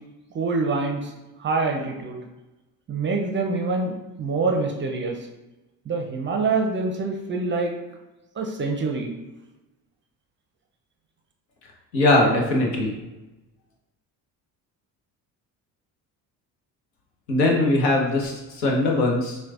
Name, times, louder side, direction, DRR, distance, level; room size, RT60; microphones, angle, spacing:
voice 1, 0.3-1.1 1.4-2.2 2.9-5.2 5.9-7.7 8.4-9.1, right 3 dB, 25° right, 2 dB, 0.4 m, -25 dB
voice 2, 11.9-12.9 17.3-19.4, left 2 dB, 85° left, 0 dB, 0.8 m, -21 dB
4.4 x 2.2 x 2.4 m, 1.0 s
hypercardioid pair, 55°, 49 cm